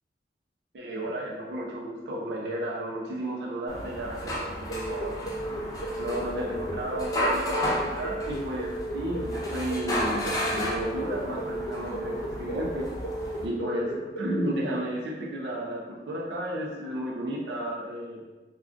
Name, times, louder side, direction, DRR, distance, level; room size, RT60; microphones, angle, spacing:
voice 1, 0.7-5.1 6.0-12.9 13.4-18.2, right 1 dB, 70° right, -3 dB, 0.4 m, -33 dB
sound 1, 3.7-13.5, left 1 dB, 20° left, 0.4 m, -33 dB
sound 2, 4.7-14.5, right 1 dB, 75° left, 0.7 m, -35 dB
3.6 x 2.3 x 2.4 m, 1.2 s
head